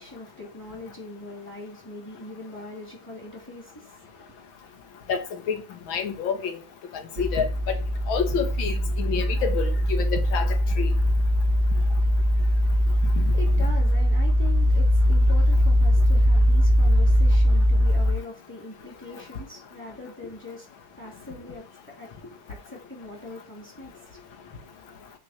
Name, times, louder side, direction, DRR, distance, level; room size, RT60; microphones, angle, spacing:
voice 1, 0.0-4.5 12.7-24.4, left 2 dB, 5° left, 2.5 m, -42 dB
voice 2, 5.1-5.6 5.9-6.6 6.9-7.8 8.1-10.9 13.2-13.3, left 6 dB, 90° left, 2.1 m, -28 dB
sound 1, 7.2-18.2, equal, 50° right, 1.2 m, -21 dB
6.8 x 4.3 x 6.5 m
omnidirectional pair, 2.1 m